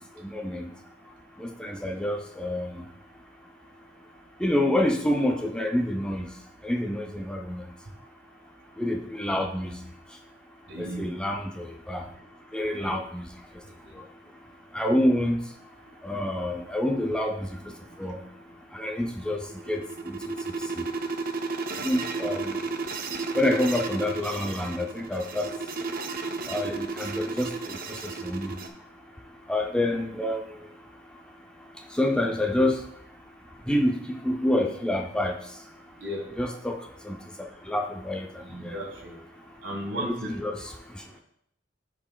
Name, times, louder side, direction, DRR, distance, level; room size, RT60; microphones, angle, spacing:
voice 1, 0.2-0.7 1.4-2.8 4.4-6.3 6.6-7.6 8.8-9.7 11.0-12.0 12.5-13.2 14.7-15.4 16.0-17.5 18.0-18.2 18.7-19.4 19.7-19.8 20.1-20.2 20.8-20.9 21.8-22.6 23.3-25.5 26.5-27.8 28.2-28.6 29.5-30.4 32.0-32.8 33.7-35.4 36.4-36.8 37.0-37.2 37.7-38.3 38.6-38.8 40.0-40.5, left 1 dB, 5° left, 2 dB, 0.5 m, -27 dB
voice 2, 10.7-11.1 12.8-12.9 22.2-22.3 36.0-36.3 38.4-39.1 39.6-40.3, equal, 75° right, 1 dB, 1.5 m, -35 dB
sound 1, 19.3-28.7, right 4 dB, 50° right, 0.6 m, -33 dB
10.5 x 4.9 x 2.3 m, 0.70 s
head